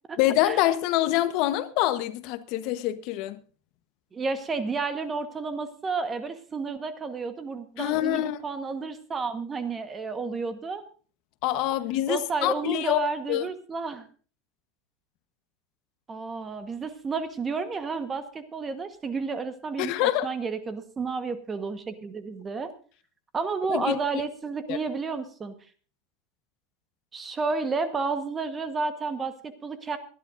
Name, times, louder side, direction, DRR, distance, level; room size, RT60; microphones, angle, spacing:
voice 1, 0.2-3.4 7.8-8.4 11.4-13.0 13.3-13.5 19.8-20.3 23.7-23.9 24.7-24.8, left 15 dB, 50° left, 1.0 m, -25 dB
voice 2, 4.1-10.8 12.1-14.1 16.1-22.7 23.3-25.5 27.1-30.0, right 4 dB, 15° right, 1.2 m, -31 dB
24.5 x 11.0 x 2.6 m
supercardioid pair, 155°, 0 cm